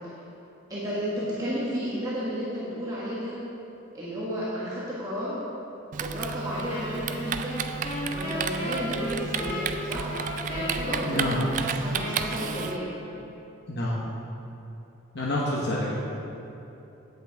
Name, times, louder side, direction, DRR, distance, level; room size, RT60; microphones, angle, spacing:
voice 1, 0.7-3.4 3.9-5.4 6.0-7.6 8.1-10.2 10.5-12.9 15.7-15.9, equal, 20° right, -9 dB, 1.3 m, -32 dB
Typing, 5.9-12.8, right 6 dB, 40° right, 0.3 m, -32 dB
Wind instrument woodwind instrument, 6.7-13.3, left 1 dB, 30° left, 1.3 m, -36 dB
voice 2, 11.0-11.3 13.7-14.0 15.1-15.9, left 1 dB, 55° left, -5 dB, 1.0 m, -28 dB
8.1 x 7.9 x 4.6 m, 2.9 s
head